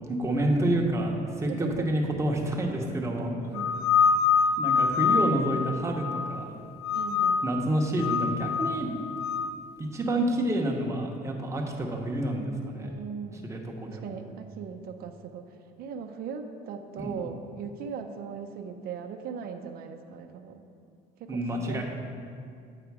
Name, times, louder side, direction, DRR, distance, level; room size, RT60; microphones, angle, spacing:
voice 1, 0.1-3.3 4.6-6.5 7.4-8.9 9.8-12.9 13.4-14.1 17.0-17.1 21.3-21.8, right 1 dB, 15° right, 0 dB, 0.9 m, -28 dB
voice 2, 1.5-1.8 3.5-3.8 6.9-7.4 12.8-13.5 13.9-20.6 21.2-21.4 21.7-21.8, right 6 dB, 60° right, 6 dB, 0.5 m, -39 dB
sound 1, 3.6-6.5 6.8-7.6 8.0-9.5, left 5 dB, 65° left, 0.5 m, -25 dB
8.3 x 4.9 x 4.7 m, 2.4 s
cardioid pair, 130°, 17 cm